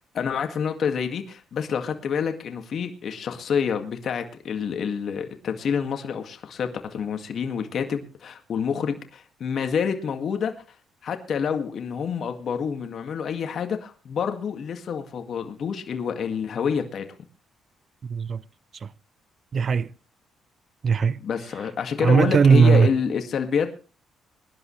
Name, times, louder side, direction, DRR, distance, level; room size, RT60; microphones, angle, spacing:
voice 1, 0.1-10.5 11.0-17.1 21.2-23.8, left 7 dB, 60° left, 2.1 m, -28 dB
voice 2, 18.0-18.4 18.7-18.9 19.5-19.9 20.8-21.2 22.0-22.9, right 6 dB, 45° right, 0.7 m, -18 dB
22.5 x 11.0 x 3.3 m
cardioid pair, 90°, 0 cm